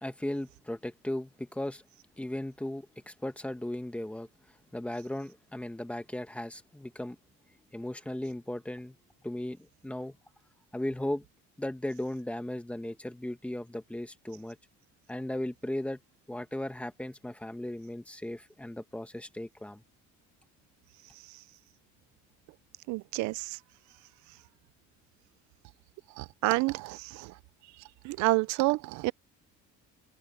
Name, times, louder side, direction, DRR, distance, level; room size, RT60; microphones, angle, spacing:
voice 1, 0.0-1.8 2.2-7.2 7.7-9.0 9.2-10.2 10.7-11.2 11.6-14.6 15.1-16.0 16.3-19.8, left 1 dB, 5° left, 1.5 m, -36 dB
voice 2, 22.9-23.6 26.2-27.3 28.0-29.1, right 22 dB, 70° right, 0.5 m, -29 dB
cardioid pair, 165°, 30 cm